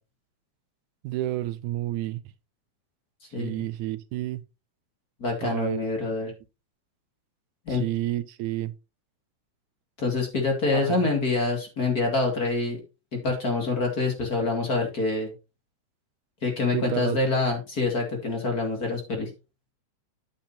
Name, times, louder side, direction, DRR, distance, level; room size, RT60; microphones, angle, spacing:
voice 1, 1.0-2.2 3.4-4.4 5.4-5.8 6.2-6.3 7.7-8.7 10.7-11.0 16.7-17.2, right 14 dB, 80° right, 2.0 m, -30 dB
voice 2, 3.3-3.6 5.2-6.3 7.7-7.8 10.0-12.8 13.1-15.3 16.4-19.3, left 3 dB, 30° left, 2.5 m, -26 dB
9.1 x 8.7 x 2.8 m
omnidirectional pair, 3.5 m